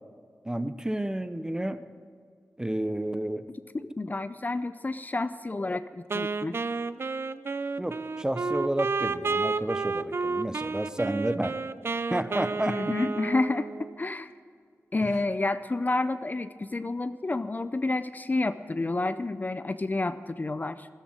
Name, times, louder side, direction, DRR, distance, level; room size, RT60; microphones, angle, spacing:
voice 1, 0.4-1.8 2.6-3.5 7.8-11.6 12.1-13.0 15.0-15.1, right 1 dB, 15° right, 12 dB, 0.7 m, -31 dB
voice 2, 3.5-6.6 12.7-14.3 14.9-20.9, left 2 dB, 35° left, 12 dB, 0.5 m, -30 dB
Wind instrument woodwind instrument, 6.1-14.0, right 4 dB, 50° right, 0.4 m, -31 dB
13.5 x 11.5 x 6.5 m, 2.1 s
wide cardioid pair, 65°, 5 cm